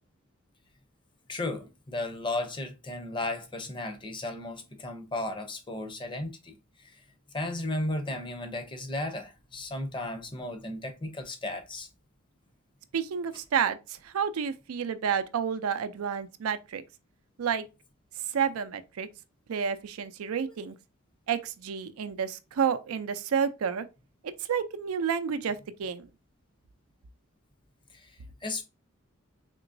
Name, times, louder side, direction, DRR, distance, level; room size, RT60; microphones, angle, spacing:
voice 1, 1.3-7.0 7.3-11.9 20.4-20.5 27.9-28.6, left 2 dB, 25° left, 0.6 m, -35 dB
voice 2, 12.9-16.8 17.4-17.7 18.3-19.1 19.5-20.7 21.3-23.9 24.2-26.1, right 7 dB, 90° right, 0.4 m, -30 dB
3.7 x 2.9 x 2.5 m
head